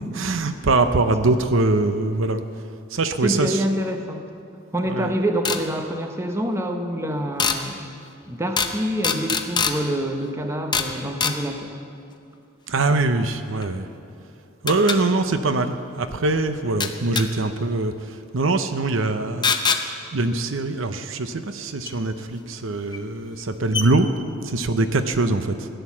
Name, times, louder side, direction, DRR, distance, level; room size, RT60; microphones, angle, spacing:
voice 1, 0.1-2.4 2.9-3.6 4.9-5.1 12.7-13.9 14.6-17.9 18.3-19.5 20.1-24.1 24.4-25.7, right 2 dB, 75° right, 9 dB, 0.7 m, -22 dB
voice 2, 3.2-4.2 4.7-7.9 8.3-11.8, right 1 dB, 15° right, 4 dB, 1.0 m, -26 dB
sound 1, 5.4-5.6 7.4-7.6 8.6-8.8 9.0-9.8 10.7-10.9 11.2-11.4 13.6-13.7 14.7-15.0 16.8-17.3 19.4-19.8 21.9-22.0 22.9-23.0 23.4-23.5 23.7-23.9, left 5 dB, 20° left, 0.7 m, -22 dB
16.0 x 10.5 x 7.3 m, 2.5 s
head